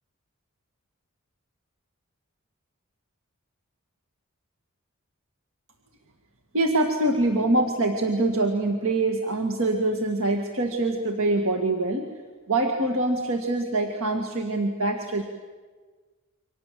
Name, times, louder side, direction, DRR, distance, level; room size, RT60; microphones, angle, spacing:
voice 1, 6.5-12.1 12.5-15.2, right 2 dB, 70° right, 3 dB, 2.0 m, -24 dB
29.5 x 25.0 x 7.7 m, 1.4 s
head